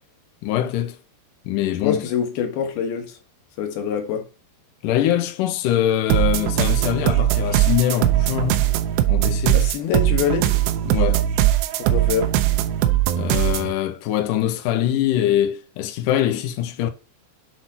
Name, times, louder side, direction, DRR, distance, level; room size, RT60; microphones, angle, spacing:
voice 1, 0.4-1.0 1.5-2.0 4.8-9.7 10.8-11.3 13.1-16.9, left 11 dB, 85° left, 1.9 m, -23 dB
voice 2, 1.8-3.2 3.6-4.3 9.5-10.5 11.8-12.3, left 7 dB, 70° left, 3.0 m, -25 dB
sound 1, 6.1-13.7, right 13 dB, 80° right, 2.7 m, -20 dB
7.8 x 4.2 x 4.1 m
omnidirectional pair, 5.0 m